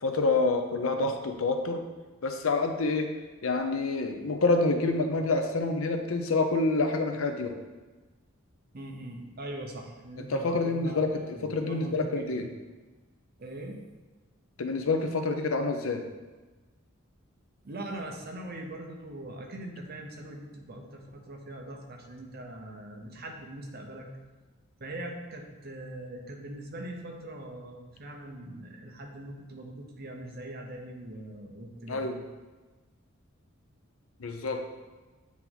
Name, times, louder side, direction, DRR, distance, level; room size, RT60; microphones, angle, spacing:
voice 1, 0.0-1.8 2.2-3.1 3.4-7.6 10.3-11.1 11.4-12.5 14.6-16.0 31.9-32.2 34.2-34.6, left 3 dB, 85° left, 5 dB, 0.6 m, -27 dB
voice 2, 8.7-12.4 13.4-13.8 17.6-24.1 24.8-32.0, right 1 dB, 50° right, 2 dB, 0.8 m, -41 dB
8.4 x 3.0 x 3.9 m, 1.2 s
head